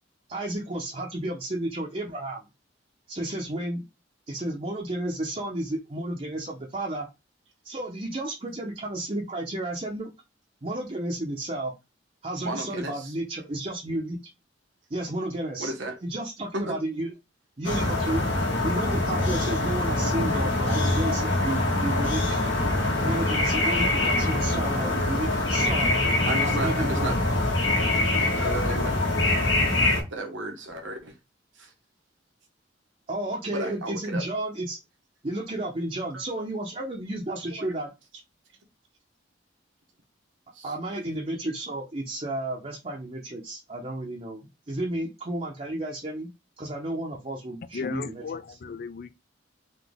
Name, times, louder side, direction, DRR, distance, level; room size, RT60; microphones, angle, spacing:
voice 1, 0.3-2.4 3.1-3.8 4.3-7.1 7.6-10.1 10.6-11.7 12.2-14.2 14.9-15.7 16.0-17.1 17.6-18.2 18.6-22.4 23.0-26.0 26.4-27.2 33.1-34.8 35.2-37.9 40.6-46.3 46.6-48.6, right 1 dB, 35° right, 0.7 m, -32 dB
voice 2, 12.4-13.2 15.6-16.0 16.5-16.8 26.2-27.1 27.8-28.9 30.1-31.1 31.6-31.7 33.5-34.2 36.1-36.2 37.5-37.7 40.5-40.7, right 1 dB, 75° right, 1.1 m, -34 dB
sound 1, 17.6-30.0, left 2 dB, 75° left, 1.4 m, -24 dB
voice 3, 47.7-49.1, left 5 dB, 50° left, 0.4 m, -35 dB
4.0 x 2.7 x 3.5 m
head